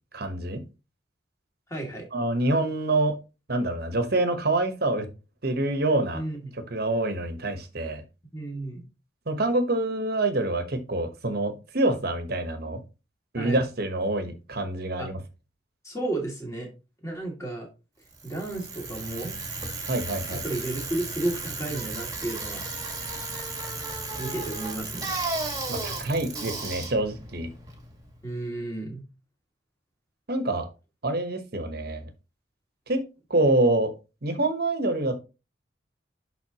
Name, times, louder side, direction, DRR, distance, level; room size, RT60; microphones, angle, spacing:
voice 1, 0.1-0.6 2.1-3.2 3.5-5.1 5.4-6.2 6.7-8.0 9.3-12.8 13.3-15.2 19.9-20.4 25.7-27.5 30.3-30.7 31.0-32.0 32.9-33.0 33.3-33.9 34.2-35.2, right 2 dB, 55° right, 8 dB, 1.1 m, -26 dB
voice 2, 1.7-2.0 6.1-6.5 8.2-8.8 13.4-13.6 15.0-15.1 15.8-16.7 17.0-17.7 18.2-19.3 20.4-22.6 24.2-25.1 28.2-29.0, right 2 dB, 15° left, 0 dB, 2.3 m, -32 dB
Bicycle, 18.1-28.2, right 3 dB, 20° right, 1.6 m, -34 dB
11.0 x 3.9 x 2.9 m, 0.29 s
head